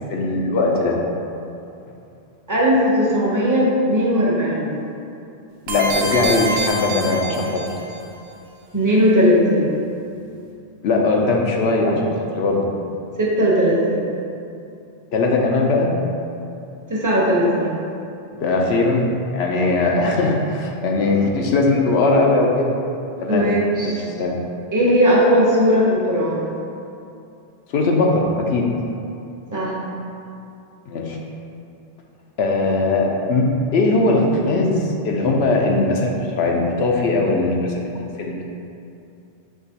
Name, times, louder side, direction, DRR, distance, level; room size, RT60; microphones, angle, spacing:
voice 1, 0.1-1.0 5.7-7.6 10.8-12.7 15.1-15.9 18.4-19.1 19.3-22.7 23.2-23.5 23.8-24.3 27.7-28.7 30.9-31.2 32.4-38.4, left 2 dB, 75° left, 0 dB, 0.8 m, -19 dB
voice 2, 2.5-4.8 8.7-9.8 13.2-14.1 16.9-17.8 23.3-24.1 24.7-26.5 29.5-29.7, equal, 20° right, -5 dB, 0.7 m, -18 dB
sound 1, 5.7-8.0, right 1 dB, 70° right, 0.9 m, -26 dB
6.0 x 2.9 x 2.8 m, 2.6 s
omnidirectional pair, 1.1 m